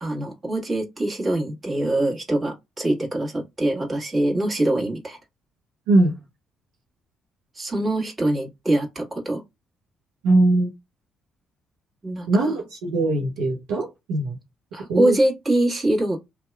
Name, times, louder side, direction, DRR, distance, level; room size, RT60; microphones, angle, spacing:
voice 1, 0.0-5.2 7.5-9.4 12.0-12.5 14.7-16.2, right 1 dB, 30° right, 1.4 m, -24 dB
voice 2, 10.2-10.7 12.3-14.4 14.9-15.2, right 2 dB, 80° right, 0.7 m, -21 dB
2.7 x 2.3 x 2.3 m
hypercardioid pair, 50°, 0 cm